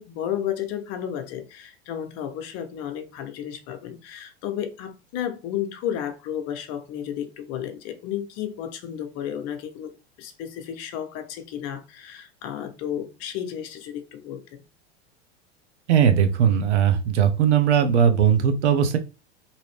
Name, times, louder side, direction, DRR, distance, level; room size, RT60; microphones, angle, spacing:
voice 1, 0.0-14.6, left 10 dB, 45° left, 0.7 m, -32 dB
voice 2, 15.9-19.0, right 8 dB, 80° right, 0.8 m, -19 dB
2.8 x 2.6 x 3.2 m
hypercardioid pair, 100°, 34 cm